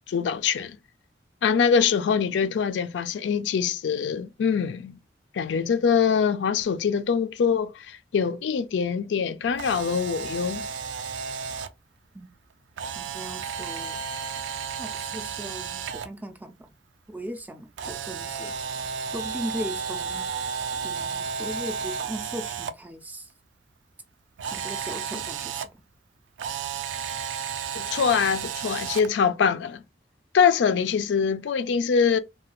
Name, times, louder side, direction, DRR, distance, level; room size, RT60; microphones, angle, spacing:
voice 1, 0.1-0.8 1.4-5.0 5.3-10.6 25.1-25.2 27.7-29.8 30.3-32.2, left 6 dB, 80° left, 0.3 m, -24 dB
Camera, 9.5-11.7 12.8-16.1 17.8-22.7 24.4-25.7 26.4-29.1, right 6 dB, 90° right, 0.4 m, -33 dB
voice 2, 13.0-14.0 14.8-16.7 17.1-18.5 19.1-20.3 20.8-23.3 24.5-25.7, equal, 10° right, 0.3 m, -38 dB
3.2 x 2.2 x 2.9 m
head